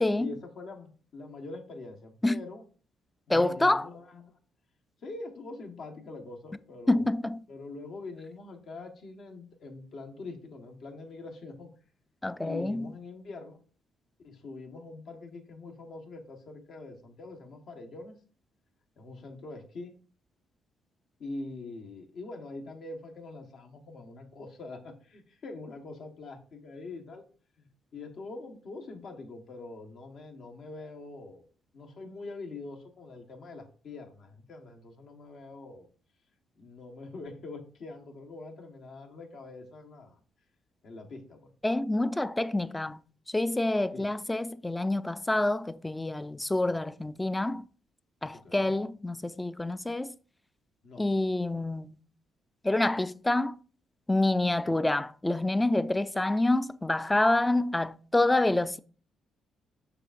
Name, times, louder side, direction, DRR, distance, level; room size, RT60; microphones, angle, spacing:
voice 1, 0.2-2.6 3.3-4.3 5.0-7.0 7.5-11.7 12.4-13.6 14.2-18.1 19.0-19.9 21.2-27.2 27.6-31.4 31.7-35.9 36.6-40.2 40.8-41.5 43.9-44.1 48.3-48.7 50.8-51.8 54.5-54.8, left 3 dB, 65° left, 1.3 m, -44 dB
voice 2, 3.3-3.9 6.9-7.4 12.2-12.9 41.6-43.0 43.3-47.6 48.2-50.2 51.0-52.0 52.6-53.6 54.1-58.8, left 2 dB, 15° left, 0.3 m, -27 dB
6.8 x 5.6 x 2.6 m
cardioid pair, 90°, 0 cm